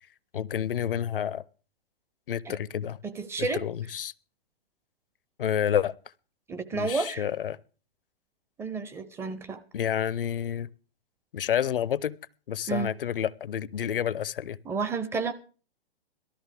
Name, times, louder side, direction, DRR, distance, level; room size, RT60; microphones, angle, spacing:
voice 1, 0.3-1.4 2.3-3.0 3.4-4.1 5.4-5.9 6.7-7.6 9.7-10.7 11.3-12.2 12.5-14.6, left 9 dB, 65° left, 0.7 m, -29 dB
voice 2, 3.0-3.6 6.5-7.2 8.6-9.6 12.7-12.9 14.7-15.3, right 4 dB, 10° right, 0.5 m, -31 dB
19.0 x 13.0 x 3.4 m
figure-of-eight pair, 120°, 30 cm